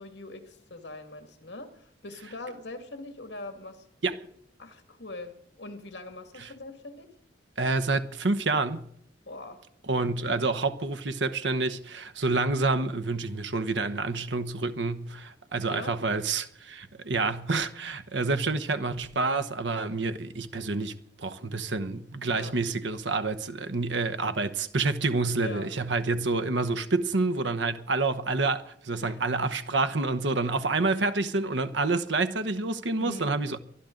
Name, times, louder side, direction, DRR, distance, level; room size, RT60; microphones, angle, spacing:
voice 1, 0.0-3.8 4.6-7.1 9.3-9.6 15.7-16.0 22.3-22.5 25.4-25.7 29.0-29.2 33.0-33.3, left 2 dB, 75° left, 2.1 m, -42 dB
voice 2, 7.6-8.9 9.9-33.6, right 3 dB, 85° right, 1.0 m, -28 dB
24.0 x 12.0 x 3.9 m
head